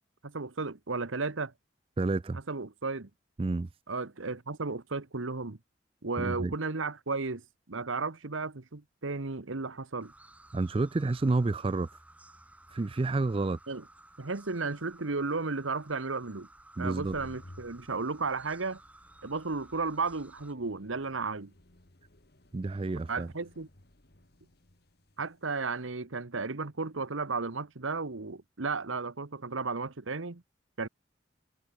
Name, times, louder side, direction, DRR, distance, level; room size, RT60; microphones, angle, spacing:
voice 1, 0.2-1.5 2.3-3.1 3.9-5.6 6.0-10.1 13.7-13.8 14.2-16.5 16.8-18.8 19.2-21.5 23.1-23.7 25.2-30.4 30.8-30.9, right 4 dB, 85° right, 1.3 m, -34 dB
voice 2, 2.0-2.4 3.4-3.7 6.2-6.5 10.5-11.9 12.7-13.6 16.8-17.1 22.5-23.3, right 3 dB, 30° right, 0.4 m, -29 dB
sound 1, 10.0-20.5, right 1 dB, 5° right, 7.9 m, -56 dB
sound 2, 16.7-27.2, left 1 dB, 55° left, 2.1 m, -57 dB
head